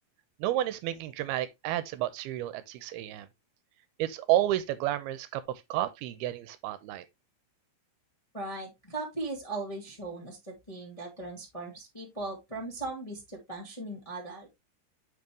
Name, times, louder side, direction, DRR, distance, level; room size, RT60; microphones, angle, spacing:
voice 1, 0.4-3.3 4.0-7.1, right 14 dB, 85° right, 2.6 m, -31 dB
voice 2, 8.3-14.5, right 2 dB, 15° left, 1.2 m, -38 dB
8.2 x 5.3 x 3.1 m
omnidirectional pair, 4.5 m